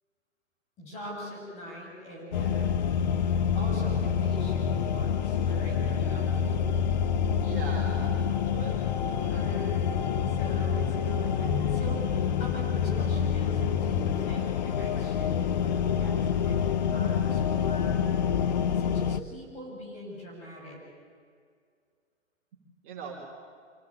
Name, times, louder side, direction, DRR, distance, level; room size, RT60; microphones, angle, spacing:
voice 1, 0.8-3.0 3.5-6.6 9.3-9.7 10.3-18.0 18.7-20.8, equal, 20° left, -2 dB, 7.3 m, -42 dB
sound 1, 2.3-19.2, left 7 dB, 35° left, 0.8 m, -27 dB
voice 2, 7.4-8.7 9.0-9.4 22.8-23.1, right 5 dB, 25° right, -4 dB, 4.5 m, -41 dB
Bass guitar, 11.4-17.7, left 7 dB, 60° left, 6.1 m, -41 dB
26.5 x 17.5 x 8.8 m, 2.1 s
hypercardioid pair, 155°, 37 cm